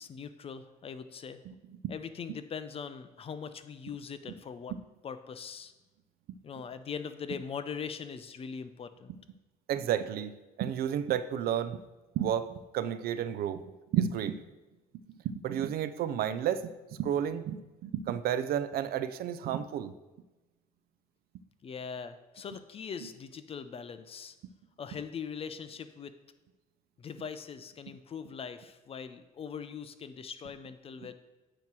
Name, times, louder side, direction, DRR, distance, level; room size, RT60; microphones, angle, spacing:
voice 1, 0.0-1.4 1.9-4.7 5.0-5.7 6.4-9.1 21.6-24.3 24.8-26.1 27.0-31.1, left 6 dB, 35° left, 11 dB, 0.5 m, -41 dB
voice 2, 1.5-1.9 6.3-6.4 9.7-11.8 12.1-13.6 13.9-14.4 15.2-19.9 23.0-23.1, right 9 dB, 65° right, 12 dB, 0.5 m, -32 dB
8.7 x 3.0 x 6.0 m, 1.1 s
cardioid pair, 110°, 17 cm